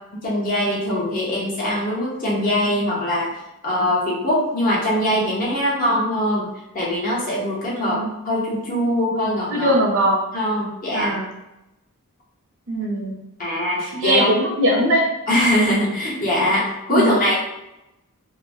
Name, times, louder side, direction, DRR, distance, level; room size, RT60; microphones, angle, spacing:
voice 1, 0.2-3.3 3.6-6.5 6.7-9.8 10.3-11.1 13.4-14.3 15.3-17.3, left 1 dB, 40° left, -5 dB, 0.8 m, -22 dB
voice 2, 7.8-8.1 9.5-10.2 10.9-11.2 12.7-13.2 13.9-15.0 16.9-17.1, equal, 60° right, -2 dB, 0.8 m, -20 dB
2.9 x 2.2 x 2.6 m, 0.90 s
head